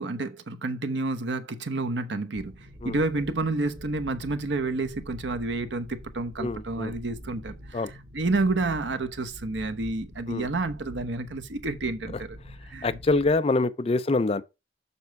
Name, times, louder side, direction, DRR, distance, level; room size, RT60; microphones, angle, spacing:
voice 1, 0.0-12.4 12.7-12.9, right 2 dB, 90° right, 0.9 m, -30 dB
sound 1, 2.3-13.3, equal, 55° right, 2.5 m, -45 dB
voice 2, 6.4-6.9 7.7-7.9 10.3-10.5 12.8-14.4, left 3 dB, 35° left, 0.5 m, -25 dB
7.0 x 5.4 x 4.6 m
head